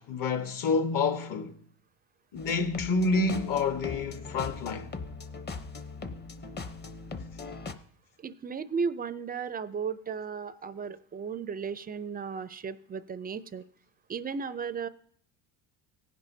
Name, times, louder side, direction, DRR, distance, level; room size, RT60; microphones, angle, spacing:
voice 1, 0.0-1.5 2.3-4.9, left 3 dB, 50° left, 1.3 m, -28 dB
sound 1, 2.4-7.7, left 4 dB, 25° left, 0.8 m, -40 dB
voice 2, 8.2-13.6 14.1-14.9, right 6 dB, 25° right, 0.4 m, -35 dB
18.5 x 10.5 x 2.7 m
cardioid pair, 125°, 42 cm